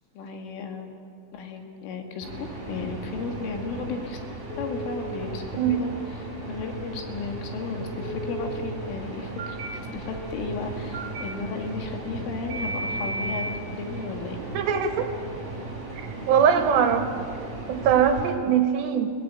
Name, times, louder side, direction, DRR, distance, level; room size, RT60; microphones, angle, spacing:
voice 1, 0.2-0.9 1.3-4.2 4.6-14.4, left 4 dB, 75° left, 4 dB, 4.5 m, -34 dB
sound 1, 2.2-18.3, right 3 dB, 15° right, 5.2 m, -37 dB
Telephone, 4.5-5.0 8.0-8.5 9.4-9.7 10.9-11.2 12.5-13.5, right 1 dB, 30° right, 4.6 m, -33 dB
voice 2, 14.5-15.1 16.3-17.1 17.7-19.1, right 8 dB, 70° right, 6 dB, 3.1 m, -21 dB
29.5 x 16.5 x 8.9 m, 2.3 s
omnidirectional pair, 5.8 m